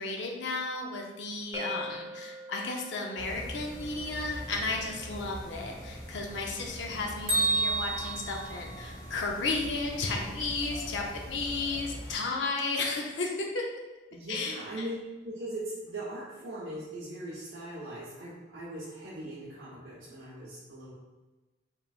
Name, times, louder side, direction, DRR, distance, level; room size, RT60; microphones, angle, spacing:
voice 1, 0.0-13.7 14.3-14.6, left 3 dB, 70° left, 0 dB, 0.6 m, -33 dB
sound 1, 1.5-7.3, left 1 dB, 15° right, 0.3 m, -45 dB
sound 2, 3.2-12.2, equal, 20° left, 1.0 m, -43 dB
Bell, 7.3-9.3, right 3 dB, 35° right, 1.4 m, -30 dB
voice 2, 14.1-14.9 15.2-20.9, right 1 dB, 80° right, -9 dB, 1.1 m, -40 dB
5.4 x 3.3 x 2.4 m, 1.2 s
head